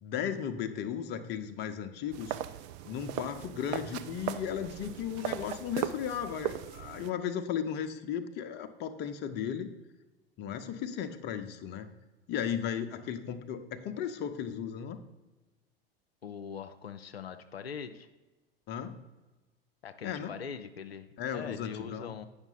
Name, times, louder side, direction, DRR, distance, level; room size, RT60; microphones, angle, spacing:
voice 1, 0.0-2.4 2.9-9.7 10.4-11.9 12.3-15.0 18.7-19.0 20.0-20.3 21.2-22.1, left 8 dB, 35° left, 8 dB, 0.7 m, -35 dB
sound 1, 2.1-7.1, right 12 dB, 40° right, 0.5 m, -38 dB
voice 2, 16.2-18.1 19.8-21.1 21.3-22.3, left 7 dB, 85° left, 8 dB, 0.5 m, -42 dB
8.9 x 5.8 x 4.0 m, 1.1 s
figure-of-eight pair, 85°, 30 cm